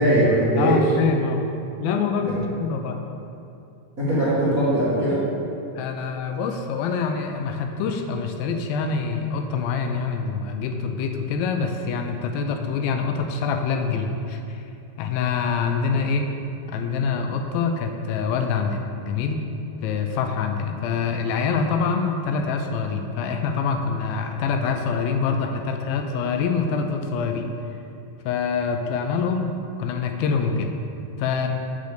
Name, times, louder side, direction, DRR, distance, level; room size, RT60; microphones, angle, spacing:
voice 1, 0.0-0.8 2.3-2.4 4.0-5.2, right 1 dB, 40° right, -12 dB, 1.3 m, -20 dB
voice 2, 0.6-1.4 1.8-3.0 5.7-14.7 15.0-16.3 16.7-19.4 19.8-27.5 28.3-29.5 29.8-30.7 31.2-31.5, left 5 dB, 85° left, 4 dB, 2.4 m, -25 dB
8.3 x 3.9 x 6.6 m, 2.7 s
omnidirectional pair, 4.2 m